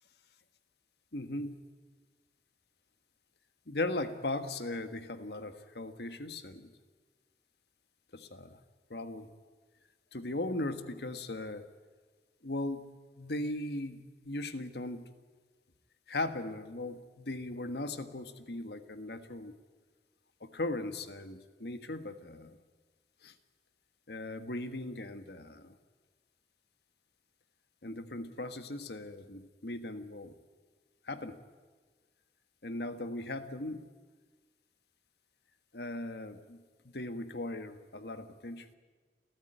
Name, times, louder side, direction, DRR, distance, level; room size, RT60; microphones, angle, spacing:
voice 1, 1.1-1.6 3.7-6.7 8.1-8.6 8.9-9.3 10.1-11.6 12.4-15.1 16.1-19.5 20.4-22.6 23.2-23.3 24.1-25.8 27.8-30.3 31.0-31.4 32.6-33.9 35.7-38.7, left 2 dB, 70° left, 9 dB, 1.5 m, -38 dB
29.5 x 14.0 x 9.1 m, 1.4 s
head